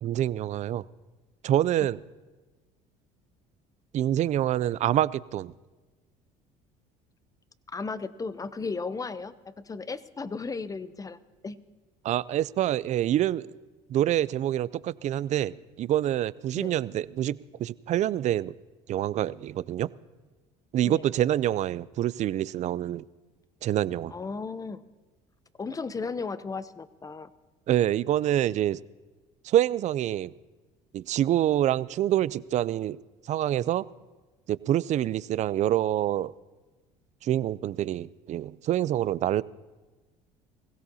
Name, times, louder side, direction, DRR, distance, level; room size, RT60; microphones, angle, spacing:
voice 1, 0.0-0.8 1.4-2.0 3.9-5.5 12.0-13.5 13.9-18.5 18.9-19.9 20.7-23.0 23.6-24.1 27.7-28.8 29.4-30.3 30.9-33.0 33.3-33.9 34.5-36.3 37.2-39.4, right 12 dB, 45° right, 20 dB, 0.4 m, -26 dB
voice 2, 7.7-11.2 11.4-11.6 16.6-16.7 20.8-21.0 24.1-24.8 25.6-27.3, left 4 dB, 20° left, 15 dB, 0.7 m, -35 dB
21.0 x 16.0 x 2.8 m, 1.2 s
supercardioid pair, 80°, 16 cm